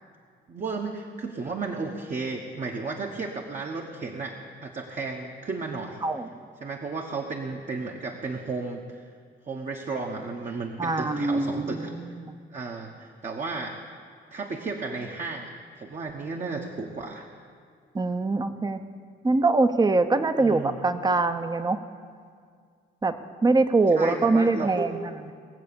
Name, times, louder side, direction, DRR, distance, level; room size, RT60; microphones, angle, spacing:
voice 1, 0.5-4.3 4.6-6.0 6.6-9.0 9.5-12.1 12.5-13.8 14.3-17.3 20.4-20.8 23.9-24.9, right 3 dB, 40° right, 1 dB, 1.2 m, -33 dB
voice 2, 10.8-12.4 17.9-18.8 19.2-21.8 23.0-23.2 23.4-25.3, right 3 dB, 20° right, 9 dB, 0.8 m, -23 dB
20.0 x 7.6 x 7.0 m, 2.1 s
cardioid pair, 90°, 20 cm